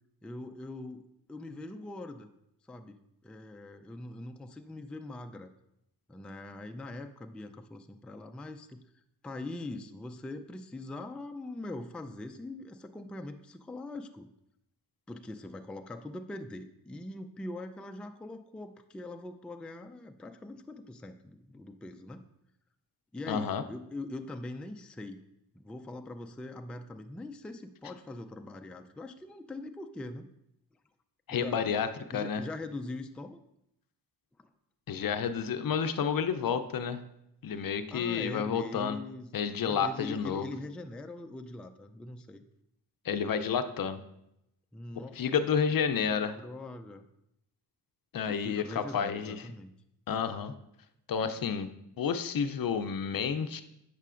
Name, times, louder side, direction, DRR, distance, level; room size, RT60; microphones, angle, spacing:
voice 1, 0.2-1.0 1.3-2.3 2.7-5.5 6.1-8.8 9.2-14.3 15.1-22.2 23.1-25.2 25.5-30.3 31.3-31.7 32.1-33.4 34.4-34.5 37.9-42.4 44.7-45.6 46.1-47.0 48.3-49.7, left 2 dB, 5° left, 6 dB, 0.3 m, -42 dB
voice 2, 23.3-23.6 31.3-31.9 32.1-32.4 34.9-37.0 37.4-39.0 39.3-40.5 43.0-44.0 45.2-46.4 48.1-49.4 50.1-50.5 51.1-51.7 52.0-53.6, left 7 dB, 60° left, 10 dB, 0.5 m, -30 dB
8.3 x 6.6 x 2.5 m, 0.82 s
cardioid pair, 85°, 40 cm